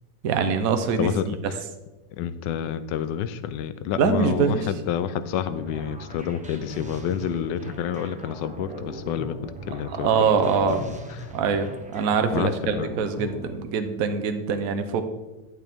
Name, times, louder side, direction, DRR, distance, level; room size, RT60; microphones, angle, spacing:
voice 1, 0.2-1.3 3.9-4.7 9.7-10.9 11.3-15.0, right 6 dB, 60° right, 8 dB, 1.1 m, -24 dB
voice 2, 2.2-10.1 10.7-11.0 12.3-12.9, left 9 dB, 75° left, 12 dB, 1.2 m, -28 dB
sound 1, 5.5-13.6, right 1 dB, 10° right, 0.4 m, -40 dB
11.5 x 7.6 x 3.5 m, 1.1 s
omnidirectional pair, 2.0 m